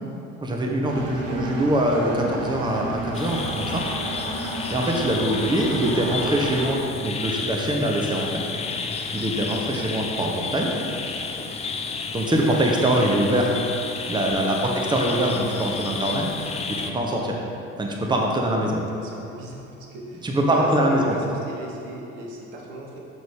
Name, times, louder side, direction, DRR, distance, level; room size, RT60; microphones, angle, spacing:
voice 1, 0.4-3.8 4.7-8.4 9.1-10.7 12.1-13.6 14.1-16.3 16.9-17.4 17.8-18.8 20.2-21.1, right 1 dB, 10° right, 0 dB, 0.9 m, -23 dB
Engine, 0.9-6.7, right 1 dB, 35° right, 1.2 m, -32 dB
voice 2, 1.1-1.4 11.3-11.6 14.4-14.8 18.9-19.6 19.9-23.0, right 2 dB, 70° right, -1 dB, 1.0 m, -36 dB
sound 1, 3.1-16.9, left 4 dB, 15° left, 0.4 m, -31 dB
6.5 x 6.2 x 3.6 m, 2.9 s
figure-of-eight pair, 55°, 39 cm